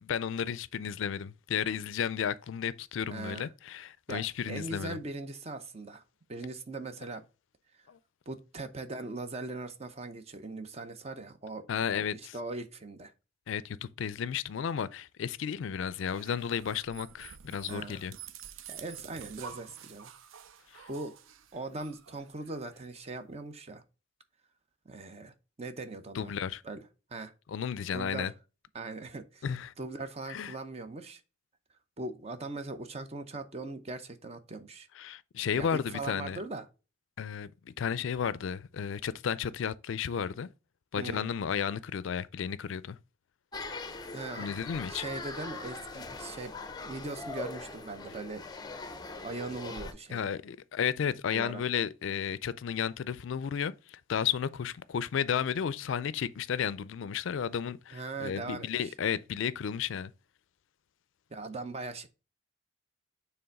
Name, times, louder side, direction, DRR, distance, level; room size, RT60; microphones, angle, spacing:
voice 1, 0.0-5.0 7.9-8.0 11.7-12.3 13.5-18.1 20.7-20.9 26.1-26.6 27.5-28.3 29.4-29.7 30.3-30.5 35.0-36.4 37.2-40.5 40.9-43.0 44.4-45.0 50.1-60.1, left 7 dB, 65° left, 0.4 m, -33 dB
voice 2, 3.1-3.5 4.1-6.0 6.3-7.2 7.7-7.9 8.3-11.7 11.9-13.1 17.7-18.1 18.7-20.1 20.9-21.2 21.5-23.8 24.8-26.3 26.6-26.8 27.1-27.3 27.9-28.3 28.7-29.5 29.8-31.2 32.0-34.9 35.5-36.7 41.0-41.3 44.1-44.5 44.9-46.5 46.8-48.4 49.2-50.3 51.3-51.6 57.9-58.9 61.3-62.1, right 3 dB, 30° right, 0.7 m, -40 dB
sound 1, 15.9-22.9, right 8 dB, 75° right, 0.5 m, -49 dB
sound 2, 43.5-49.9, left 3 dB, 20° left, 0.6 m, -41 dB
6.9 x 3.4 x 5.2 m
head